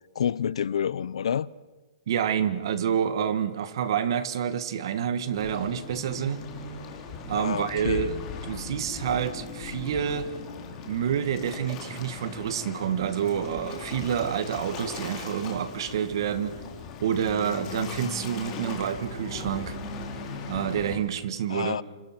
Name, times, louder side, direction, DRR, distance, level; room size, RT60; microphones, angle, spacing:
voice 1, 0.1-1.5 7.3-8.1 21.5-21.8, left 8 dB, 75° left, 0.7 m, -28 dB
voice 2, 2.1-6.4 7.3-10.3 10.9-16.5 17.0-19.8 20.5-21.8, right 8 dB, 50° right, 1.8 m, -28 dB
Waves surf, 5.3-21.0, left 5 dB, 20° left, 3.5 m, -38 dB
27.5 x 24.5 x 6.0 m
hypercardioid pair, 175°, 3 cm